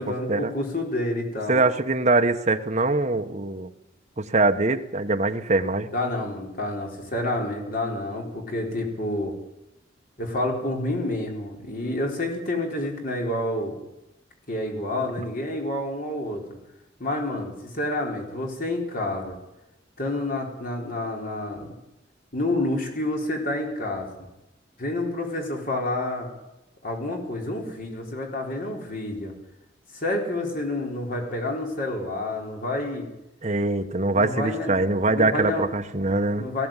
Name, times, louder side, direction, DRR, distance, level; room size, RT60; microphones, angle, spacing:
voice 1, 0.0-1.6 5.9-9.3 10.2-13.8 14.5-16.5 17.0-19.4 20.0-21.7 22.3-24.1 24.8-26.3 26.8-29.3 29.9-33.1 34.1-34.8 35.1-35.7 36.4-36.7, left 1 dB, 50° left, 1 dB, 4.4 m, -29 dB
voice 2, 1.5-3.7 4.2-5.9 33.4-36.5, right 2 dB, 35° right, 6 dB, 1.3 m, -23 dB
18.5 x 16.0 x 9.1 m, 0.94 s
head